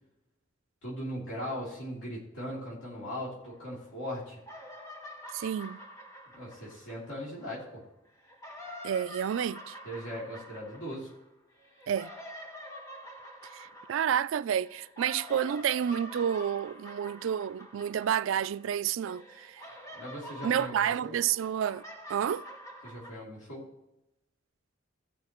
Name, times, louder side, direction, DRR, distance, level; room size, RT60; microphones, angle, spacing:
voice 1, 0.8-4.4 6.3-7.8 9.8-11.1 19.9-21.1 22.8-23.6, equal, 65° left, 2.9 m, -39 dB
sound 1, 3.4-4.1 4.4-7.6 8.2-18.8 19.0-23.1, equal, 15° left, 1.5 m, -47 dB
voice 2, 5.3-5.8 8.8-9.8 11.9-12.1 13.5-19.6 20.4-21.8 22.1-22.4, right 9 dB, 65° right, 0.3 m, -30 dB
16.5 x 5.6 x 3.0 m
head